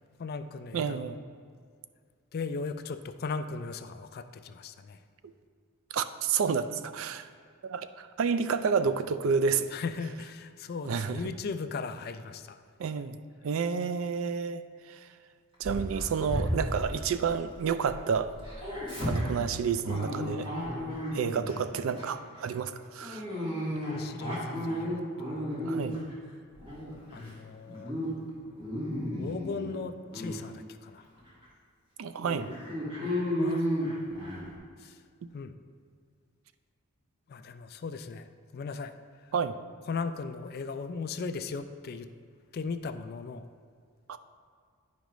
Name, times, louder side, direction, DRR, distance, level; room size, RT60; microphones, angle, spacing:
voice 1, 0.2-1.1 2.3-5.0 9.7-12.6 23.7-25.5 27.0-28.0 29.2-31.1 33.4-33.6 34.8-35.0 35.3-35.5 37.3-38.3 38.5-38.9 39.9-42.1 42.5-43.4, left 4 dB, 45° left, 9 dB, 0.3 m, -37 dB
voice 2, 0.7-1.2 5.9-7.3 7.6-9.7 10.8-11.2 12.8-13.2 13.4-14.6 14.9-15.0 15.6-18.3 19.0-20.5 21.1-23.2 25.7-26.0 32.0-32.6 33.5-33.6 39.3-39.6 44.1-44.2, right 6 dB, 70° right, 12 dB, 0.3 m, -30 dB
Dog, 15.6-17.9 18.2-21.5 21.9-22.2 23.0-26.1 26.5-27.3 27.7-28.1 28.4-29.7 30.1-30.4 31.0-31.1 31.4-31.5 32.2-34.5, equal, 25° right, 1.9 m, -33 dB
10.0 x 5.2 x 3.1 m, 2.1 s
head